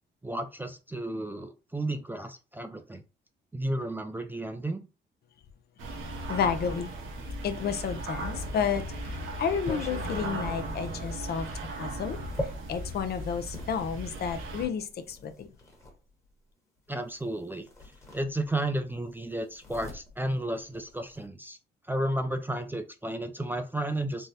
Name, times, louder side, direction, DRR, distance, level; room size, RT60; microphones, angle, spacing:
voice 1, 0.2-3.0 3.5-4.9 16.9-17.7 18.1-21.6 21.9-24.3, right 1 dB, 10° right, 0.3 m, -32 dB
sound 1, 5.8-14.7, right 1 dB, 80° right, 0.7 m, -37 dB
voice 2, 6.2-6.9 7.4-8.8 9.4-11.5 11.8-15.5, left 7 dB, 55° left, 0.5 m, -31 dB
sound 2, 9.0-13.7 14.6-16.0 17.2-17.3 17.6-18.8 19.0-21.3, left 1 dB, 15° left, 1.1 m, -42 dB
3.5 x 2.0 x 2.7 m
cardioid pair, 90°, 20 cm